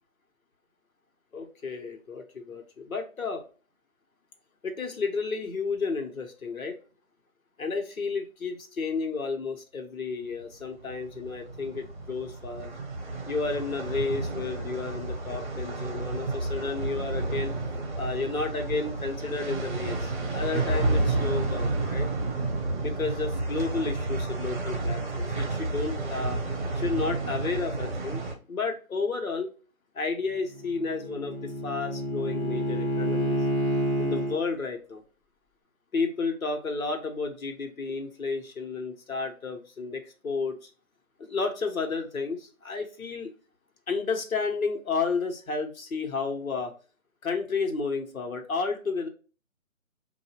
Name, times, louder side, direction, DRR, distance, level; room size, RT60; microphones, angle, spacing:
voice 1, 1.3-3.4 4.6-6.8 7.6-12.7 13.3-17.5 18.0-22.1 22.8-26.4 26.7-29.5 29.9-33.4 34.0-35.0 35.9-40.7 41.2-43.3 43.9-46.7 47.2-49.1, left 4 dB, 80° left, 4 dB, 1.3 m, -32 dB
sound 1, 10.8-28.3, right 2 dB, 35° right, 0.9 m, -31 dB
Bowed string instrument, 30.3-34.4, right 1 dB, 20° left, 0.6 m, -29 dB
4.7 x 2.6 x 2.9 m, 0.35 s
hypercardioid pair, 160°, 41 cm